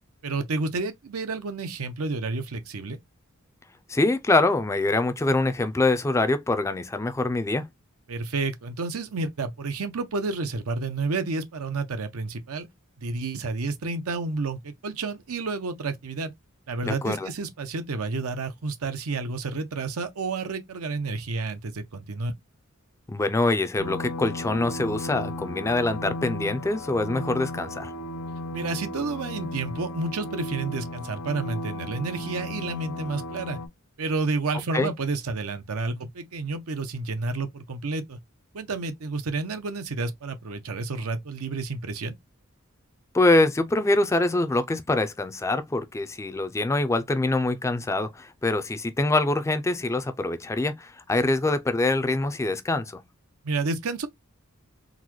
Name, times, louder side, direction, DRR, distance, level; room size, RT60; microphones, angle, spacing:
voice 1, 0.2-3.0 8.1-12.7 13.0-16.3 16.7-22.3 28.5-33.6 34.0-38.2 38.5-42.1 53.4-54.1, right 3 dB, 85° right, 0.7 m, -30 dB
voice 2, 3.9-7.7 16.8-17.3 23.1-27.9 34.7-34.9 43.1-53.0, left 2 dB, 15° left, 0.3 m, -24 dB
sound 1, 23.8-33.7, left 1 dB, 80° left, 0.8 m, -35 dB
3.9 x 2.2 x 3.0 m
head